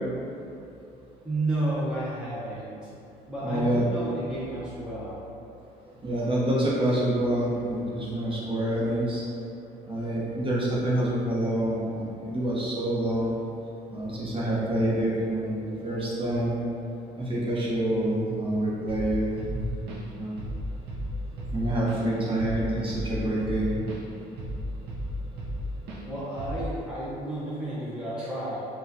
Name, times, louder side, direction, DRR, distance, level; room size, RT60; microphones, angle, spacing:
voice 1, 1.2-2.9 3.2-5.2 26.0-28.7, right 1 dB, 5° right, -9 dB, 0.7 m, -31 dB
voice 2, 3.4-3.8 6.0-9.2 9.9-11.8 12.2-13.4 13.9-16.5 17.3-19.3 19.5-19.6 20.2-20.4 21.5-23.8, right 1 dB, 30° right, -7 dB, 0.9 m, -27 dB
Drum kit / Drum, 18.9-19.1 19.4-20.1 20.4-20.6 20.9-24.0 24.4-25.6 25.9-26.1 26.4-26.7, right 1 dB, 80° right, 0.6 m, -35 dB
4.7 x 2.3 x 2.6 m, 2.6 s
cardioid pair, 110°, 17 cm